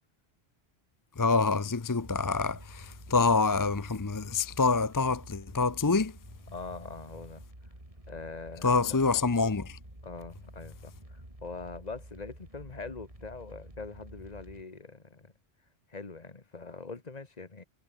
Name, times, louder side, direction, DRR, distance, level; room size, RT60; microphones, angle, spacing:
voice 1, 1.2-6.1 8.6-9.8, left 4 dB, 25° left, 0.6 m, -26 dB
sound 1, 2.0-14.6, right 1 dB, 30° right, 6.4 m, -50 dB
voice 2, 6.5-7.4 8.1-9.0 10.0-15.3 15.9-17.6, left 4 dB, 40° left, 1.9 m, -43 dB
omnidirectional pair, 1.1 m